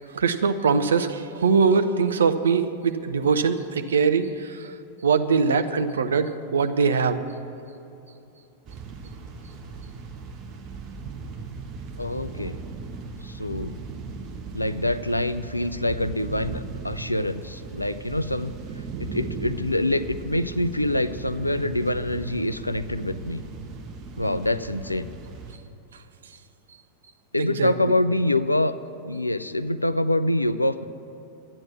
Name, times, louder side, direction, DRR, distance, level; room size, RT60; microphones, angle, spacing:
voice 1, 0.1-4.7 5.0-7.2 27.4-27.7, right 5 dB, 70° right, 9 dB, 0.7 m, -22 dB
sound 1, 8.7-25.6, right 4 dB, 35° right, 1.4 m, -37 dB
voice 2, 12.0-12.6 13.2-13.8 14.5-18.5 19.0-23.4 24.2-25.1 27.3-28.8 29.0-30.9, left 1 dB, 85° left, 12 dB, 0.4 m, -25 dB
12.0 x 9.8 x 7.1 m, 2.9 s
figure-of-eight pair, 90°, 0 cm